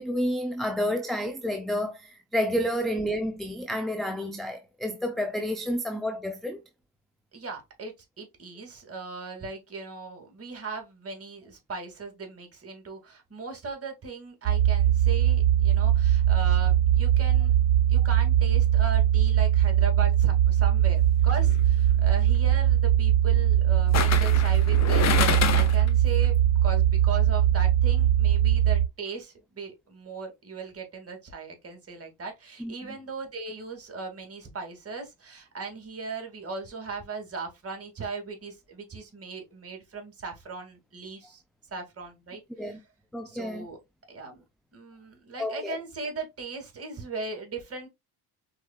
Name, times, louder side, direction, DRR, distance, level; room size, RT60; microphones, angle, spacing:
voice 1, 0.0-6.6 32.6-32.7 42.6-42.8 43.1-43.7 45.4-45.8, equal, ahead, 0.4 m, -30 dB
voice 2, 7.3-17.6 17.9-26.3 26.6-41.4 41.7-42.8 43.2-43.8 44.1-44.4 44.7-47.9, right 4 dB, 30° right, 2.2 m, -38 dB
sound 1, 14.5-28.9, right 11 dB, 80° right, 0.8 m, -21 dB
sound 2, 21.3-21.6 23.9-25.9 26.2-26.3, left 9 dB, 35° left, 0.8 m, -27 dB
4.7 x 4.0 x 2.3 m
supercardioid pair, 90°, 48 cm